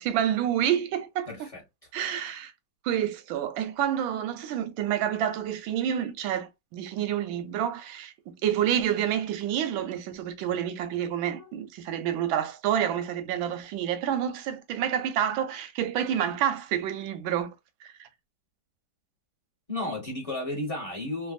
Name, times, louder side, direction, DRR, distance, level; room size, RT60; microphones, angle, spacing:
voice 1, 0.0-1.3 1.9-2.5 2.8-17.5 17.8-18.1, right 10 dB, 90° right, 1.4 m, -28 dB
voice 2, 1.3-1.6 11.3-11.6 19.7-21.3, left 2 dB, 25° left, 0.8 m, -33 dB
3.3 x 2.2 x 2.4 m
omnidirectional pair, 2.1 m